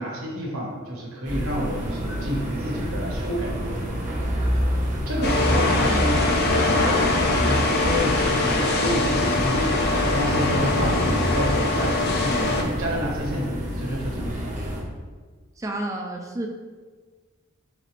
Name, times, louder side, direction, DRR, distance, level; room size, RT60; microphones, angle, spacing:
voice 1, 0.0-4.1 4.8-6.8 7.4-14.4, equal, 80° right, -2 dB, 1.2 m, -30 dB
sound 1, 1.2-14.8, equal, 35° right, 0.9 m, -28 dB
sound 2, 5.2-12.6, left 2 dB, 50° left, 0.6 m, -23 dB
voice 2, 5.5-6.2 15.6-16.5, right 1 dB, 15° right, 1 dB, 0.3 m, -31 dB
4.1 x 4.0 x 3.2 m, 1.4 s
head